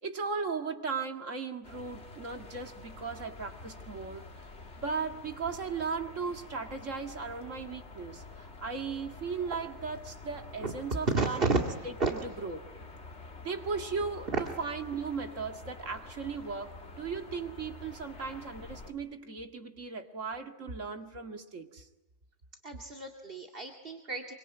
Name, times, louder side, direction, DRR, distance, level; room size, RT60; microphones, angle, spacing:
voice 1, 0.0-4.2 4.8-12.6 13.4-21.9, right 5 dB, 70° right, 5 dB, 2.3 m, -37 dB
sound 1, 1.6-18.9, left 3 dB, 55° left, 2.6 m, -48 dB
voice 2, 11.1-11.6 12.0-12.1 22.6-24.3, right 3 dB, 45° right, 3 dB, 2.4 m, -31 dB
26.5 x 25.0 x 9.0 m, 1.0 s
omnidirectional pair, 1.4 m